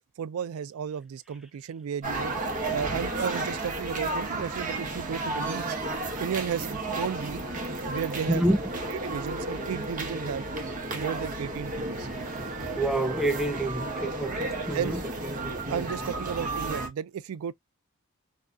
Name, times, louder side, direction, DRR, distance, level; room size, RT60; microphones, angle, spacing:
voice 1, 0.2-2.3 2.7-5.8 6.2-7.4 7.9-8.4 8.9-12.1 14.7-15.0 15.5-17.5, right 8 dB, 70° right, 0.3 m, -34 dB
sound 1, 2.0-16.9, right 2 dB, 35° right, 0.7 m, -33 dB
voice 2, 12.7-15.0, right 1 dB, ahead, 0.4 m, -27 dB
2.6 x 2.2 x 2.3 m
head